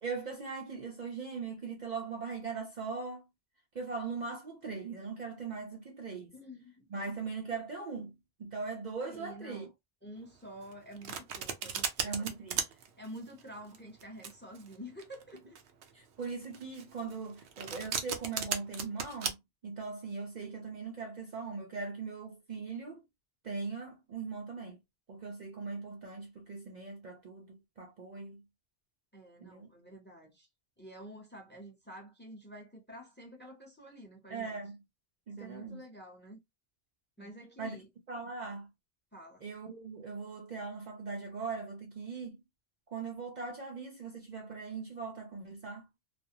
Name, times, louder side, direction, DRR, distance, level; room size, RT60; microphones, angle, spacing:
voice 1, 0.0-3.2 3.7-6.3 6.9-9.7 12.0-12.6 15.9-19.4 19.6-23.0 23.4-24.8 25.1-28.4 29.4-29.7 34.3-34.8 35.3-35.8 37.2-37.3 37.6-37.8 38.1-38.7 39.4-42.4 42.9-45.9, right 4 dB, 55° right, 0.6 m, -40 dB
voice 2, 6.3-6.8 9.1-9.7 10.0-12.6 13.0-15.6 29.1-30.5 30.8-34.6 35.4-36.4 37.2-37.9 39.1-39.4, equal, 10° left, 0.7 m, -49 dB
Domestic sounds home sounds, 10.6-19.3, right 7 dB, 85° right, 0.9 m, -37 dB
2.5 x 2.1 x 2.7 m
omnidirectional pair, 1.1 m